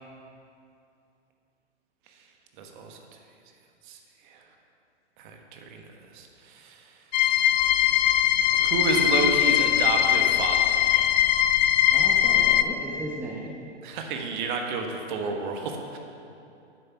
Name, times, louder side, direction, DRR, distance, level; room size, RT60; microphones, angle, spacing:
voice 1, 2.6-3.0 3.9-4.0 4.3-4.4 5.2-5.8 6.1-6.8 8.5-10.6 10.9-11.1 13.8-16.0, right 4 dB, 45° right, 3 dB, 1.2 m, -30 dB
sound 1, 7.1-12.6, left 11 dB, 40° left, 0.4 m, -21 dB
voice 2, 11.9-13.5, right 1 dB, 5° right, -2 dB, 0.8 m, -36 dB
8.9 x 6.8 x 5.7 m, 2.6 s
hypercardioid pair, 125°, 35 cm